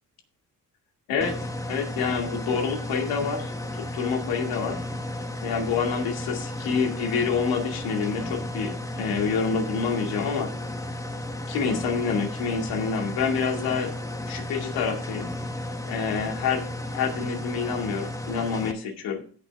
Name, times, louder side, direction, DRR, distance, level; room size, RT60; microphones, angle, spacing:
voice 1, 1.1-4.8 5.4-10.5 11.5-13.9 14.3-15.3 15.9-19.2, left 5 dB, 90° left, 2 dB, 2.4 m, -27 dB
sound 1, 1.2-18.7, left 1 dB, 10° left, 1.2 m, -33 dB
17.5 x 6.2 x 3.5 m, 0.43 s
cardioid pair, 95°, 36 cm